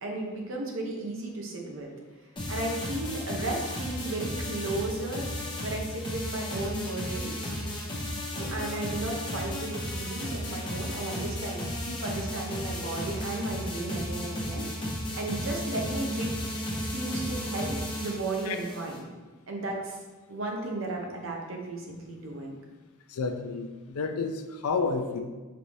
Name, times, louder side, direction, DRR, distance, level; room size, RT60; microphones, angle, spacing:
voice 1, 0.0-1.9 2.5-5.3 5.6-7.4 8.3-14.7 15.1-16.4 16.8-19.0 19.5-20.0 20.3-22.5, right 2 dB, 60° right, 0 dB, 0.7 m, -34 dB
sound 1, 2.4-19.0, left 1 dB, 20° left, 0.9 m, -34 dB
voice 2, 23.1-25.2, left 4 dB, 80° left, 6 dB, 0.4 m, -30 dB
5.3 x 2.7 x 3.1 m, 1.3 s
head